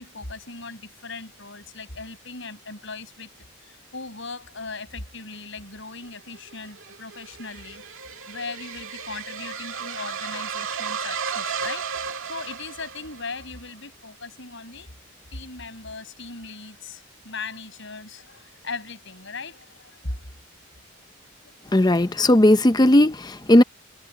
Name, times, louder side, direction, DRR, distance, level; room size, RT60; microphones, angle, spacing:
voice 1, 0.0-3.3 3.6-7.8 8.3-14.9 15.3-20.2 21.4-21.6, left 3 dB, 55° left, 7.1 m, -38 dB
sound 1, 6.4-13.4, right 6 dB, 65° right, 1.8 m, -34 dB
voice 2, 21.7-23.6, left 1 dB, 20° left, 0.5 m, -16 dB
head